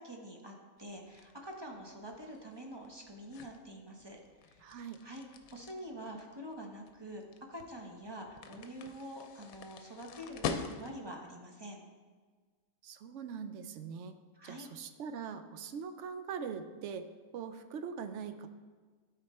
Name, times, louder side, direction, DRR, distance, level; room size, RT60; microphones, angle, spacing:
voice 1, 0.0-4.2 4.5-5.2 5.5-7.2 7.5-11.8 14.3-14.7, equal, 20° right, 0 dB, 0.8 m, -46 dB
sound 1, 0.8-11.2, left 6 dB, 80° left, 1.1 m, -45 dB
voice 2, 4.6-5.0 12.8-14.2 14.4-17.1 17.3-18.5, right 6 dB, 65° right, 9 dB, 0.8 m, -42 dB
12.5 x 4.3 x 4.2 m, 1.5 s
omnidirectional pair, 1.5 m